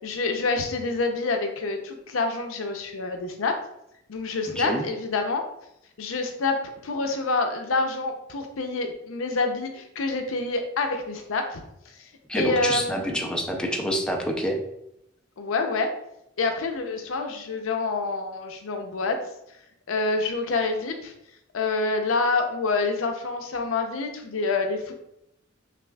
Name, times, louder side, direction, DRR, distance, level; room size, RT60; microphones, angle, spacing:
voice 1, 0.0-3.6 4.1-5.4 6.0-11.6 12.4-13.4 15.4-15.9 16.4-19.2 19.9-21.1 21.5-24.9, left 3 dB, 80° left, 5 dB, 0.5 m, -27 dB
voice 2, 12.3-14.6, equal, 5° left, 1 dB, 0.4 m, -27 dB
5.8 x 2.3 x 2.2 m, 0.79 s
head